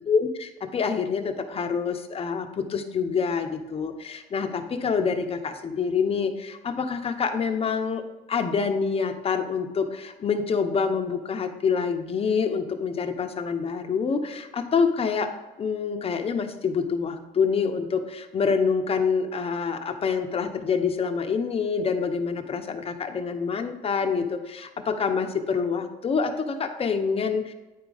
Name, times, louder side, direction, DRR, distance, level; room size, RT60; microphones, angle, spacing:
voice 1, 0.0-15.3 15.6-27.5, left 5 dB, 35° left, 6 dB, 0.9 m, -26 dB
9.4 x 4.7 x 4.0 m, 1.1 s
cardioid pair, 110°, 17 cm